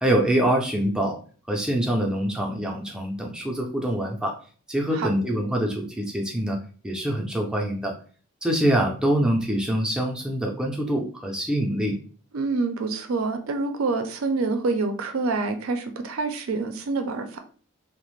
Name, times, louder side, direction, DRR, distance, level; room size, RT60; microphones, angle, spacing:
voice 1, 0.0-1.2 1.5-4.3 4.7-6.6 6.8-7.9 8.4-12.0, right 1 dB, 5° right, 0 dB, 0.4 m, -25 dB
voice 2, 12.3-17.4, right 3 dB, 75° right, 7 dB, 0.4 m, -27 dB
2.4 x 2.0 x 3.0 m, 0.40 s
head